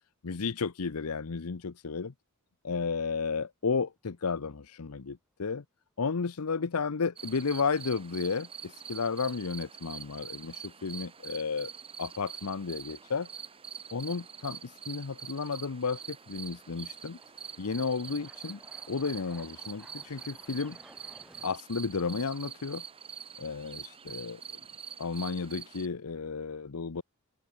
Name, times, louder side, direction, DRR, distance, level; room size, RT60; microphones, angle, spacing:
voice 1, 0.2-2.1 2.6-5.6 6.0-11.7 12.0-13.3 13.9-17.2 17.6-18.6 18.9-20.8 21.4-22.8 23.4-24.4 25.0-27.0, left 5 dB, 75° left, 0.8 m, -33 dB
sound 1, 3.6-4.3 4.6-4.7 7.6-7.7 9.1-9.3 9.6-9.7 15.1-15.2 15.9-21.6, equal, 5° right, 3.1 m, -58 dB
sound 2, 7.2-25.9, right 7 dB, 25° right, 0.7 m, -45 dB
open air
head